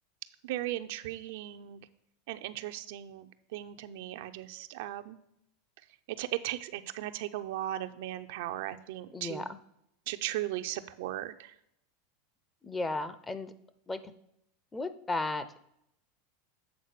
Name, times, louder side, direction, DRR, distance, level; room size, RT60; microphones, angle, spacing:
voice 1, 0.4-1.8 2.3-3.3 3.5-5.2 6.1-9.4 10.1-11.5, right 14 dB, 70° right, 9 dB, 0.5 m, -37 dB
voice 2, 9.1-9.6 12.6-13.5 13.9-14.0 14.7-15.6, left 2 dB, 15° left, 12 dB, 0.6 m, -34 dB
8.1 x 3.9 x 6.6 m, 0.76 s
supercardioid pair, 120°, 0 cm